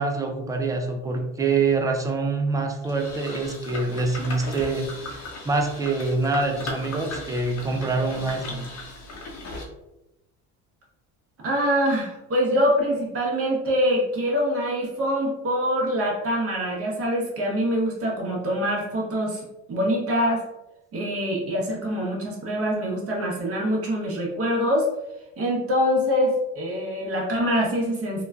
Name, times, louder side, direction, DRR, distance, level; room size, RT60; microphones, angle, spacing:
voice 1, 0.0-8.7, right 3 dB, 10° right, 2 dB, 0.3 m, -25 dB
sound 1, 2.8-9.6, left 2 dB, 45° left, 0.8 m, -37 dB
voice 2, 11.4-20.4 20.9-24.9 25.4-28.2, equal, 40° right, -1 dB, 1.0 m, -24 dB
3.0 x 2.2 x 2.3 m, 0.95 s
supercardioid pair, 90°, 37 cm